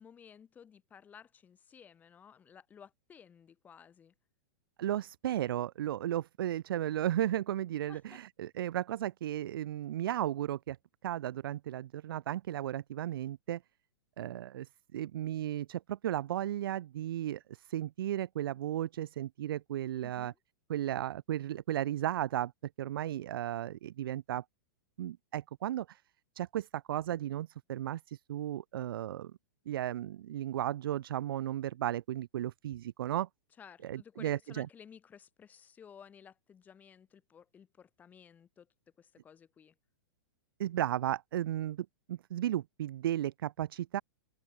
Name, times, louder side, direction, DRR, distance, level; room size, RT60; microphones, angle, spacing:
voice 1, 0.0-4.1 7.9-8.2 20.0-20.4 33.6-38.7 39.0-39.7, left 7 dB, 15° left, 7.3 m, -56 dB
voice 2, 4.8-10.8 11.0-13.6 14.2-20.3 20.7-22.5 22.8-24.4 25.0-26.0 26.4-29.3 29.7-33.3 33.8-34.7 40.6-44.0, right 12 dB, 70° right, 0.5 m, -35 dB
supercardioid pair, 165°, 12 cm